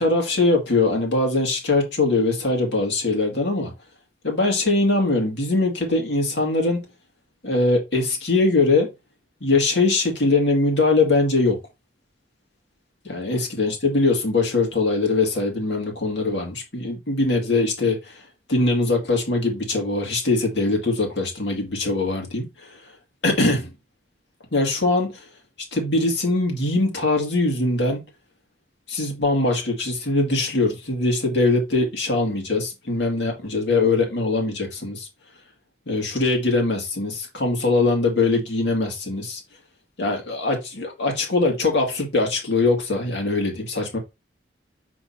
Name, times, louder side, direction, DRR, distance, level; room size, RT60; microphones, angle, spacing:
voice 1, 0.0-3.7 4.2-6.9 7.4-8.9 9.4-11.6 13.0-18.2 18.5-22.8 23.2-23.7 24.5-25.2 25.7-28.0 28.9-35.1 35.9-39.4 40.0-44.0, left 2 dB, 80° left, 2.3 m, -22 dB
7.6 x 2.8 x 5.8 m
head